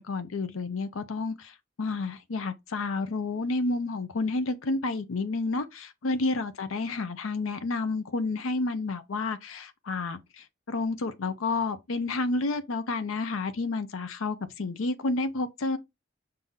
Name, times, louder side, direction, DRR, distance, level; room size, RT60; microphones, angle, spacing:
voice 1, 0.0-1.5 1.8-15.8, left 3 dB, 85° left, 0.6 m, -30 dB
5.5 x 2.7 x 3.6 m
head